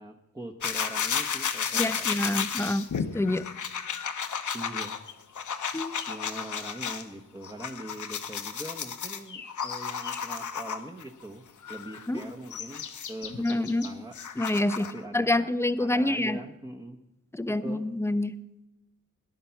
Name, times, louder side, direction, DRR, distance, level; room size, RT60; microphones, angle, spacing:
voice 1, 0.0-2.6 4.5-4.9 6.1-11.4 11.7-14.1 14.8-15.5 15.8-17.0 17.6-17.8, right 1 dB, 10° right, 1 dB, 1.0 m, -42 dB
sound 1, 0.6-7.0 7.4-11.0 11.6-15.0, left 7 dB, 70° left, 1.0 m, -33 dB
voice 2, 1.7-2.9 3.1-3.5 5.7-5.9 12.1-12.2 13.4-13.9 14.4-14.9 15.1-16.4 17.3-18.4, left 1 dB, 10° left, 14 dB, 0.5 m, -27 dB
18.5 x 11.0 x 5.8 m, 0.93 s
wide cardioid pair, 135°, 31 cm